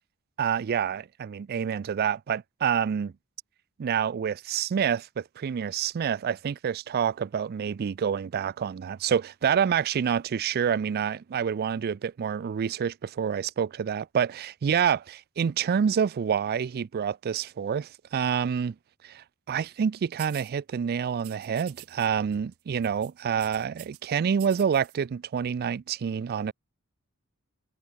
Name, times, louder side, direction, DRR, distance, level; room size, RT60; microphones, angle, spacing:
voice 1, 0.4-3.1 3.8-18.8 19.0-26.5, right 7 dB, 45° right, 0.3 m, -27 dB
sound 1, 20.2-20.5 21.2-22.1 22.3-22.6 22.8-24.0 24.3-25.0, right 19 dB, 70° right, 0.8 m, -47 dB
head